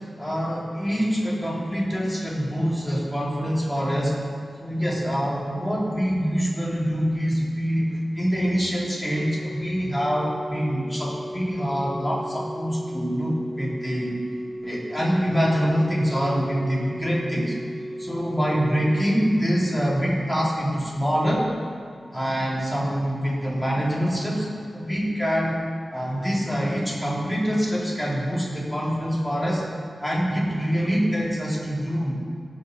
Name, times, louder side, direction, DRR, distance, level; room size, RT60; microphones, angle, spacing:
voice 1, 0.2-4.1 4.6-14.2 14.6-17.5 18.0-21.5 22.1-25.7 25.9-29.6 30.0-32.2, equal, 5° left, -6 dB, 3.4 m, -25 dB
Organ, 9.1-20.0 21.1-21.3, equal, 45° right, 2.1 m, -36 dB
16.5 x 6.9 x 6.7 m, 2.2 s
wide cardioid pair, 105°, 0 cm